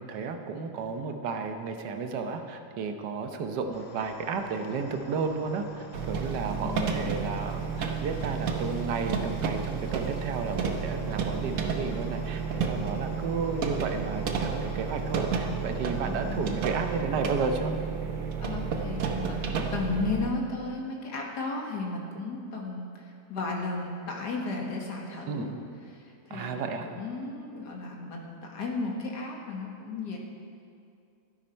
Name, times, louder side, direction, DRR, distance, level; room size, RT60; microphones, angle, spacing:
voice 1, 0.0-17.7 25.3-25.6 26.3-26.8, right 5 dB, 85° right, 6 dB, 1.5 m, -33 dB
sound 1, 3.7-17.0, left 5 dB, 55° left, 1.0 m, -47 dB
sound 2, 5.9-20.3, right 5 dB, 60° right, 1.2 m, -31 dB
voice 2, 6.6-7.0 16.0-16.6 18.4-25.6 25.9-30.2, left 3 dB, 75° left, 0 dB, 2.1 m, -34 dB
12.5 x 10.5 x 4.4 m, 2.5 s
omnidirectional pair, 1.8 m